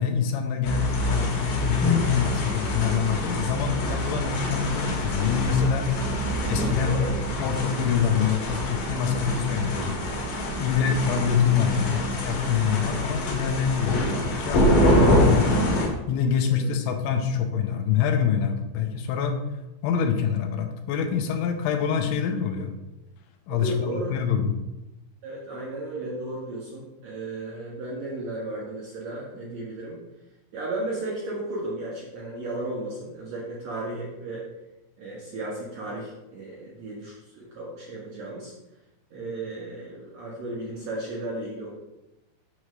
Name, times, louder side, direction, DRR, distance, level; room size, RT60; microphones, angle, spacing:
voice 1, 0.0-5.9 6.4-7.0 7.4-10.0 10.6-19.4 19.8-22.7 23.5-24.5, left 7 dB, 90° left, 5 dB, 3.1 m, -25 dB
sound 1, 0.6-15.9, equal, 60° left, 2.7 m, -26 dB
voice 2, 6.8-7.1 16.5-16.7 23.5-24.2 25.2-30.0 30.5-34.5 35.0-38.5 39.1-41.8, right 2 dB, 70° right, -4 dB, 1.6 m, -34 dB
8.4 x 3.3 x 6.2 m, 0.97 s
omnidirectional pair, 5.3 m